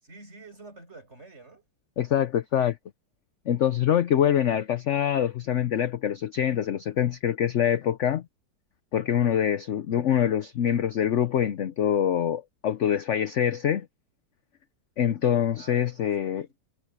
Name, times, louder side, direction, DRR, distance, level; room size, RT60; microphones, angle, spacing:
voice 1, 0.0-1.7 15.6-16.6, right 3 dB, 35° right, 7.8 m, -49 dB
voice 2, 2.0-2.8 3.5-8.2 8.9-13.9 15.0-16.5, left 9 dB, 65° left, 0.7 m, -25 dB
omnidirectional pair, 2.0 m